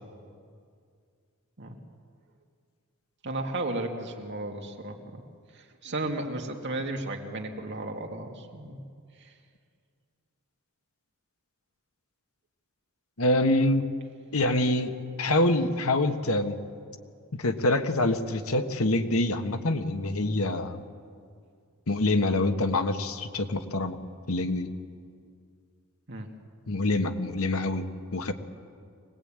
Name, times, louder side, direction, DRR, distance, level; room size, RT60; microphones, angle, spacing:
voice 1, 3.2-5.2 5.5-8.8 9.2-9.3 26.1-26.3, right 2 dB, 55° right, 2 dB, 2.4 m, -34 dB
voice 2, 13.2-13.9 14.3-14.9 15.2-16.6 17.4-20.8 21.9-24.0 24.3-24.7 26.7-27.9 28.1-28.3, left 2 dB, 85° left, 7 dB, 1.5 m, -25 dB
24.0 x 20.0 x 8.9 m, 2.2 s
head